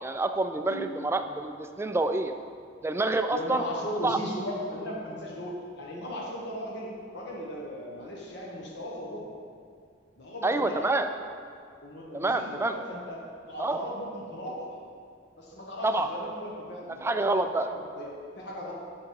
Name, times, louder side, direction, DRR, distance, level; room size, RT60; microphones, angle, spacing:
voice 1, 0.0-2.3 2.8-3.6 4.0-4.2 10.4-11.1 12.1-12.7 13.6-13.8 15.8-16.1 17.0-17.7, right 2 dB, 15° right, 7 dB, 0.3 m, -27 dB
voice 2, 3.3-9.4 10.2-11.2 11.8-14.7 15.4-18.7, equal, 65° left, -3 dB, 1.2 m, -37 dB
7.4 x 6.3 x 4.7 m, 2.3 s
head